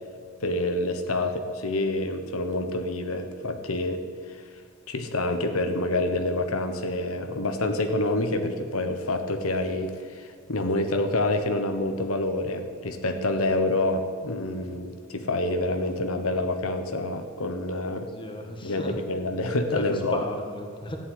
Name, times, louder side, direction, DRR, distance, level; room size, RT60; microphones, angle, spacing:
voice 1, 0.4-4.0 4.3-4.4 4.9-18.1 18.6-20.2, left 2 dB, 90° left, 7 dB, 1.2 m, -27 dB
voice 2, 18.2-18.9 19.7-21.0, left 1 dB, 25° left, 3 dB, 1.8 m, -35 dB
14.0 x 8.9 x 9.6 m, 2.2 s
head